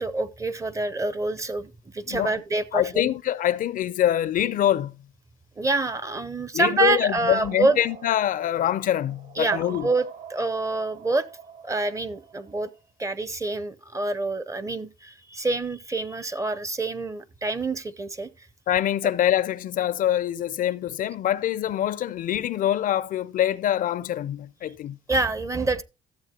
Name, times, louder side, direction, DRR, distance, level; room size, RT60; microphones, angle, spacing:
voice 1, 0.0-3.1 5.6-7.8 9.4-11.3 11.6-12.7 13.0-18.5 25.1-25.8, right 2 dB, 20° right, 0.6 m, -27 dB
voice 2, 2.7-4.9 6.5-9.9 18.7-25.0, left 11 dB, 55° left, 0.5 m, -24 dB
sound 1, 7.4-12.8, right 7 dB, 70° right, 3.9 m, -42 dB
13.5 x 7.4 x 2.8 m
cardioid pair, 110°, 17 cm